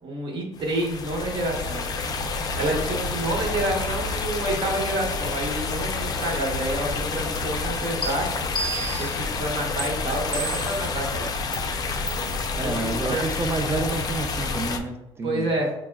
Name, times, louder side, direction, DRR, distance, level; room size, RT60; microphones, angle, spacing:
voice 1, 0.0-1.9 2.6-8.4 9.0-11.3 12.6-13.2 15.2-15.7, right 1 dB, 50° right, -1 dB, 1.1 m, -28 dB
sound 1, 0.6-14.8, left 4 dB, 35° left, 0.4 m, -29 dB
sound 2, 8.0-8.1 8.6-9.2 9.8-9.9 10.3-10.9 11.5-11.6 12.1-12.3, right 2 dB, 5° left, 0.8 m, -30 dB
voice 2, 12.6-15.5, right 3 dB, 25° right, 4 dB, 0.5 m, -29 dB
5.4 x 2.1 x 2.3 m, 0.89 s
cardioid pair, 95°, 11 cm